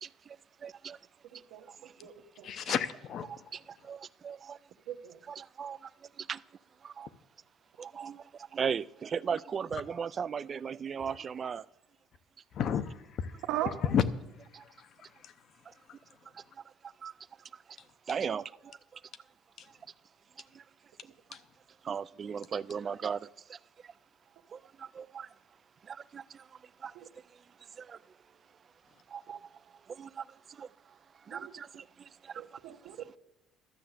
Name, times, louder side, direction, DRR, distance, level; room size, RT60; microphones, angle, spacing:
voice 1, 0.0-1.0 1.7-1.9 3.3-4.6 5.2-6.4 6.8-7.1 7.8-11.7 14.5-14.6 15.7-15.8 16.3-17.1 17.4-17.8 18.1-19.0 19.7-19.8 20.4-20.6 21.8-23.9 24.5-25.3 25.8-28.0 29.1-33.2, right 7 dB, 30° right, 0.3 m, -39 dB
voice 2, 1.3-1.6 2.0-2.5 4.9-5.2 13.5-13.7 27.0-27.1 31.3-31.5 32.4-33.0, right 13 dB, 70° right, 1.0 m, -38 dB
voice 3, 2.4-3.5 12.5-14.0 14.4-15.3 19.6-19.7 21.3-21.4, left 8 dB, 45° left, 0.7 m, -33 dB
12.0 x 6.8 x 7.8 m
cardioid pair, 150°, 0 cm